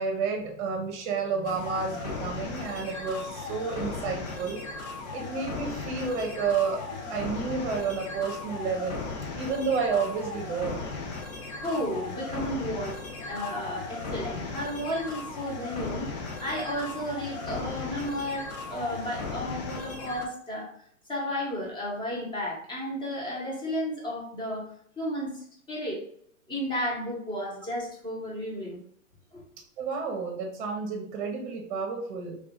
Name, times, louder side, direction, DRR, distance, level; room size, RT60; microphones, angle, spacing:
voice 1, 0.0-4.6 5.1-6.8 7.1-9.0 9.3-10.8 29.8-32.4, right 5 dB, 35° right, 2 dB, 0.8 m, -30 dB
sound 1, 1.4-20.3, left 3 dB, 30° left, 0.5 m, -37 dB
voice 2, 11.6-20.7 21.1-24.6 25.0-26.0 26.5-28.8 29.3-29.4, equal, 10° left, -4 dB, 0.9 m, -33 dB
3.0 x 2.4 x 3.6 m, 0.66 s
hypercardioid pair, 125°, 41 cm